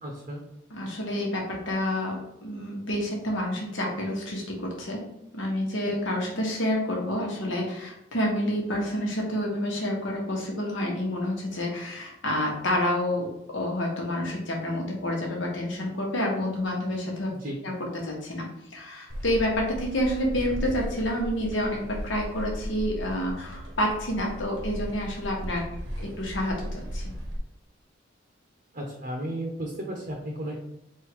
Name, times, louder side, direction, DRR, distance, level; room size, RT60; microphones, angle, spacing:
voice 1, 0.0-0.4 17.4-17.6 28.7-30.6, right 1 dB, 40° right, 0 dB, 0.6 m, -34 dB
voice 2, 0.7-5.1 5.3-17.3 17.6-25.6 26.0-27.0, left 1 dB, 80° left, -1 dB, 1.2 m, -29 dB
sound 1, 19.1-27.4, equal, 80° right, 0.8 m, -36 dB
3.6 x 2.5 x 4.5 m, 0.83 s
head